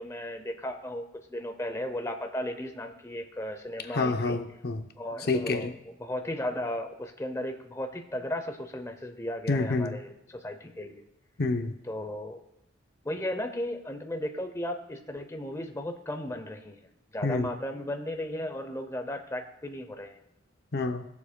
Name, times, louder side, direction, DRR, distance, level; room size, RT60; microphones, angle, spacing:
voice 1, 0.0-4.4 5.0-11.0 11.8-12.4 13.0-16.8 17.1-20.2, left 1 dB, 15° left, 0.6 m, -35 dB
voice 2, 3.9-4.9 5.3-5.7 9.5-10.0 11.4-11.8 17.2-17.5 20.7-21.1, left 3 dB, 50° left, 0.6 m, -28 dB
19.0 x 7.1 x 2.2 m
head